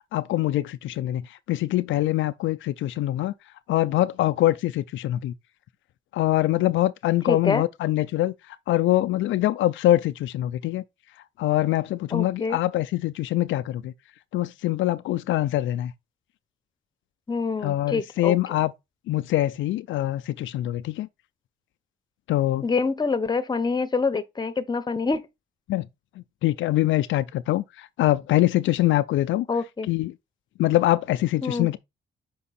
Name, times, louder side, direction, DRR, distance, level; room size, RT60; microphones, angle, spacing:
voice 1, 0.1-3.3 3.7-5.3 6.1-10.8 11.4-13.9 14.3-15.9 17.6-18.7 19.1-21.1 22.3-22.6 25.7-25.9 26.2-29.5 29.9-30.1 30.6-31.8, left 15 dB, 75° left, 0.4 m, -24 dB
voice 2, 7.3-7.6 12.1-12.6 17.3-18.4 22.6-25.3 29.5-29.9 31.4-31.7, left 4 dB, 20° left, 0.9 m, -26 dB
6.0 x 4.8 x 4.2 m
cardioid pair, 90°, 20 cm